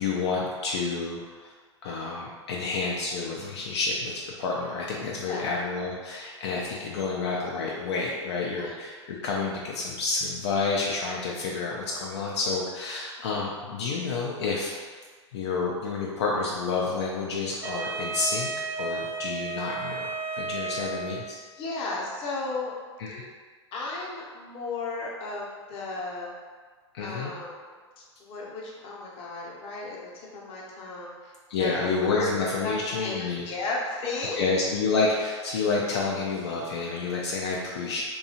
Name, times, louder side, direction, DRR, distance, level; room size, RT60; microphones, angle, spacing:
voice 1, 0.0-1.5 1.8-15.0 15.3-21.4 23.0-23.3 26.9-27.3 31.5-33.5 34.4-38.0, left 4 dB, 65° left, -3 dB, 0.4 m, -29 dB
Wind instrument woodwind instrument, 17.6-21.5, right 3 dB, 15° right, 0.3 m, -33 dB
voice 2, 21.5-22.7 23.7-26.3 27.0-32.3 32.6-34.4, left 3 dB, 35° left, -3 dB, 0.7 m, -35 dB
2.7 x 2.3 x 2.7 m, 1.5 s
hypercardioid pair, 100°, 15 cm